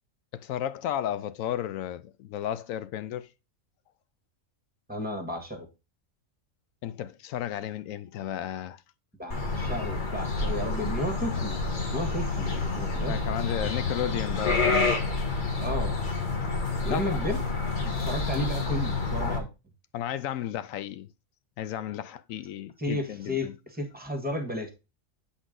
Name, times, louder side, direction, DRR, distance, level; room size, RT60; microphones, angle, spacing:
voice 1, 0.3-3.3 6.8-8.8 13.1-15.0 16.9-17.1 17.8-18.0 19.9-21.1 21.6-23.5, left 11 dB, 85° left, 1.0 m, -33 dB
voice 2, 4.9-5.7 9.2-11.6 11.9-13.2 15.6-15.9 16.8-17.4 18.0-19.5 22.8-24.7, left 1 dB, 5° right, 1.3 m, -33 dB
sound 1, 9.3-19.4, left 3 dB, 40° left, 1.3 m, -28 dB
8.0 x 4.2 x 3.7 m
omnidirectional pair, 1.4 m